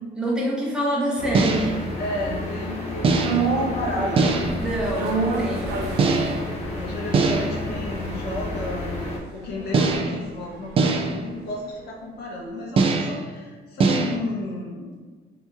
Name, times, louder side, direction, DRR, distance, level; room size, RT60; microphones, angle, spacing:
voice 1, 0.2-2.0 4.6-6.0, right 1 dB, 5° right, -5 dB, 0.9 m, -26 dB
sound 1, 1.2-9.2, left 2 dB, 40° left, 0.7 m, -32 dB
sound 2, 1.3-1.8 3.0-3.5 4.2-4.7 6.0-6.6 7.1-7.7 9.7-10.2 10.8-11.3 12.8-13.3 13.8-14.2, right 3 dB, 35° right, 0.3 m, -22 dB
voice 2, 2.0-4.4 6.7-9.0 9.3-14.9, left 1 dB, 75° left, -2 dB, 1.0 m, -32 dB
sound 3, 3.2-11.5 11.8-11.9, right 4 dB, 80° right, 0.5 m, -31 dB
3.5 x 2.9 x 2.4 m, 1.4 s
cardioid pair, 110°, 17 cm